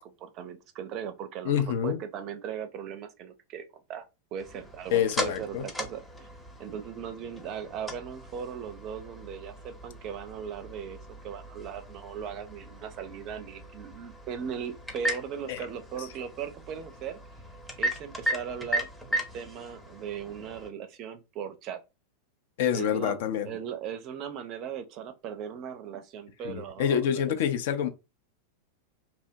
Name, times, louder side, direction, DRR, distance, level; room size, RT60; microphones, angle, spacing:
voice 1, 0.0-3.6 3.9-4.1 4.3-6.3 6.6-17.2 17.8-21.8 22.7-23.2 23.5-27.4, right 8 dB, 40° right, 0.4 m, -38 dB
voice 2, 1.4-2.0 4.9-5.6 15.5-15.7 22.6-23.5 26.4-27.9, left 9 dB, 55° left, 0.4 m, -27 dB
sound 1, 4.4-20.7, right 1 dB, 5° left, 0.6 m, -37 dB
2.8 x 2.0 x 2.6 m
figure-of-eight pair, 90°, 0 cm